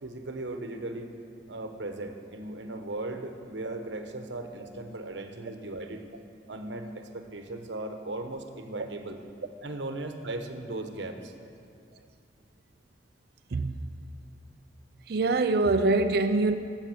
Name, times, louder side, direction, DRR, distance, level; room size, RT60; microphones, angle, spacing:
voice 1, 0.0-1.1 1.5-6.0 6.5-9.2 9.6-11.3, right 2 dB, 80° right, 1.1 m, -37 dB
voice 2, 15.1-16.5, right 3 dB, 60° right, 0.5 m, -24 dB
15.0 x 6.4 x 7.8 m
head